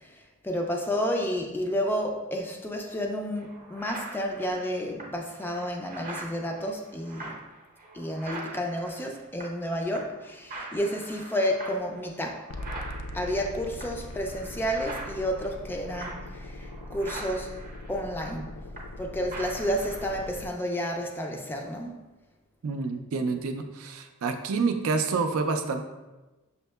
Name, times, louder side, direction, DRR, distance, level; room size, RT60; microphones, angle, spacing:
voice 1, 0.4-7.4 7.9-12.5 13.1-17.6 17.9-18.5 19.0-22.0, equal, 10° left, 2 dB, 0.3 m, -31 dB
sound 1, 2.8-2.9 3.4-9.7 9.9-10.2 10.5-19.0 19.3-20.3, right 2 dB, 40° right, 0.7 m, -43 dB
sound 2, 12.5-20.5, left 1 dB, 85° left, 0.3 m, -41 dB
voice 2, 22.6-25.8, right 4 dB, 75° right, 6 dB, 0.4 m, -28 dB
6.2 x 2.7 x 2.2 m, 1.1 s
head